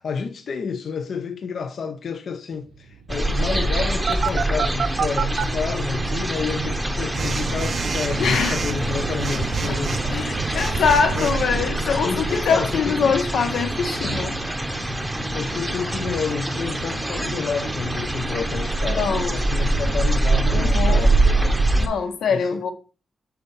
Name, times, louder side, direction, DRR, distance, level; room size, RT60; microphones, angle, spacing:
voice 1, 0.0-10.7 11.1-13.6 14.0-14.2 15.0-22.0 22.3-22.6, left 5 dB, 50° left, 0.6 m, -30 dB
sound 1, 2.5-22.0, right 5 dB, 80° right, 0.9 m, -38 dB
sound 2, 3.1-21.9, right 2 dB, 5° right, 0.8 m, -24 dB
Telephone, 4.1-5.4 7.1-11.5, right 6 dB, 40° right, 0.5 m, -27 dB
voice 2, 8.2-8.6 9.7-9.8 10.1-14.3 18.9-19.3 20.5-21.0 21.8-22.7, left 6 dB, 85° left, 1.2 m, -23 dB
6.8 x 4.4 x 5.3 m
wide cardioid pair, 180°, 0 cm